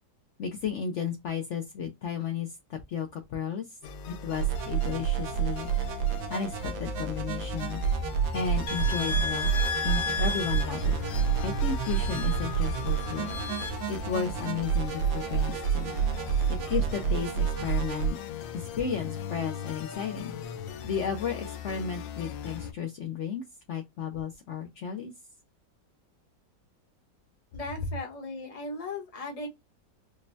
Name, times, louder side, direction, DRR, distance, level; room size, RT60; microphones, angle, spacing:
voice 1, 0.4-3.7 4.1-5.7 6.3-7.8 8.3-9.5 9.8-11.0 11.4-13.3 13.6-15.9 16.5-18.2 18.5-20.4 20.8-25.1, left 7 dB, 70° left, 0.6 m, -34 dB
sound 1, 3.8-22.7, left 8 dB, 90° left, 1.4 m, -39 dB
sound 2, 4.4-18.1, right 8 dB, 80° right, 1.4 m, -29 dB
sound 3, 8.7-13.7, left 4 dB, 55° left, 1.3 m, -35 dB
voice 2, 27.5-29.5, left 2 dB, 25° left, 0.9 m, -37 dB
5.1 x 2.1 x 2.6 m
omnidirectional pair, 2.0 m